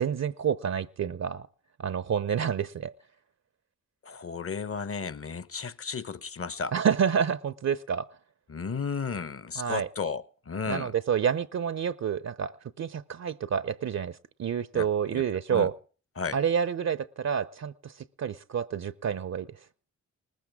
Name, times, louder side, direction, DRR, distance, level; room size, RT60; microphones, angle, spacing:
voice 1, 0.0-1.5 1.8-2.9 6.7-8.1 9.6-9.9 10.6-12.5 12.8-15.7 16.3-17.9 18.2-19.5, right 7 dB, 60° right, 0.7 m, -28 dB
voice 2, 4.0-6.7 8.5-10.9 14.7-15.2 15.5-15.7 16.2-16.4, left 5 dB, 45° left, 1.1 m, -34 dB
19.0 x 14.5 x 3.6 m
cardioid pair, 55°, 31 cm